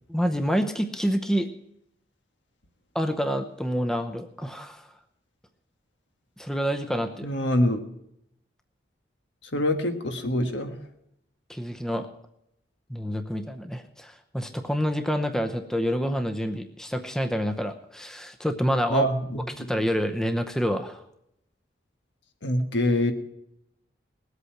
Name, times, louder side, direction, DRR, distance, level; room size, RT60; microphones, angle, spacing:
voice 1, 0.1-1.5 2.9-4.9 6.4-7.3 11.5-12.1 12.9-19.1 19.6-21.0, equal, 5° left, 6 dB, 0.7 m, -27 dB
voice 2, 7.2-7.8 9.5-10.7 18.9-19.7 22.4-23.1, left 1 dB, 85° left, 6 dB, 1.5 m, -25 dB
19.5 x 8.3 x 5.8 m, 0.77 s
head